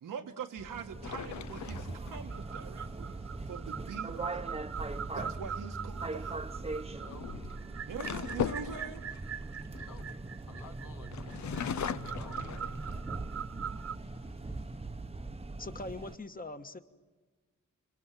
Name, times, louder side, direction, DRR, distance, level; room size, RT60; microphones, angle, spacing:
voice 1, 0.0-3.2 3.5-4.6 5.1-6.4 7.9-9.0, right 7 dB, 85° right, 6 dB, 1.4 m, -43 dB
sound 1, 0.6-16.2, right 3 dB, 20° right, 0.9 m, -41 dB
sound 2, 1.0-2.6 5.6-5.9 6.9-10.6 11.1-13.2 13.8-13.9 14.2-14.8, left 8 dB, 65° left, 0.7 m, -39 dB
sound 3, 2.3-14.0, right 8 dB, 50° right, 0.7 m, -43 dB
voice 2, 6.9-7.5 8.6-9.0 9.7-10.1 10.5-11.8 12.1-12.5, left 4 dB, 80° left, 4 dB, 2.0 m, -53 dB
voice 3, 15.6-16.8, left 2 dB, 25° left, 9 dB, 1.5 m, -41 dB
28.0 x 22.5 x 7.5 m, 1.3 s
cardioid pair, 65°, 32 cm